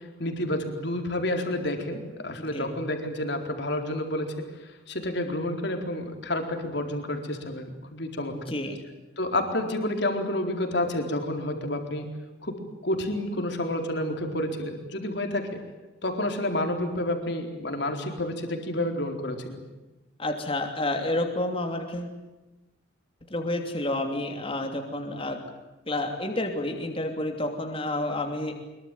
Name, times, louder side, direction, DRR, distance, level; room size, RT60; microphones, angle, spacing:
voice 1, 0.2-4.4 4.9-8.4 9.2-12.1 12.4-12.6 12.8-15.6 16.0-19.6, left 1 dB, 55° left, 4 dB, 4.2 m, -29 dB
voice 2, 8.3-8.8 20.2-22.1 23.3-25.4 25.9-28.5, left 1 dB, 25° left, 3 dB, 3.0 m, -29 dB
24.5 x 23.0 x 9.3 m, 1.1 s
head